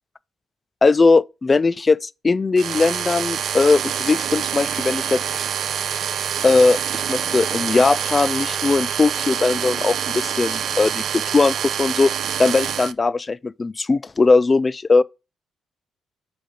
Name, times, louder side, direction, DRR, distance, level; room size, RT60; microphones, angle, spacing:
voice 1, 0.8-5.2 6.4-12.1 12.4-15.0, left 3 dB, 30° left, 0.3 m, -19 dB
sound 1, 2.6-12.9, right 8 dB, 65° right, 0.4 m, -26 dB
5.1 x 3.8 x 5.0 m
cardioid pair, 90°, 0 cm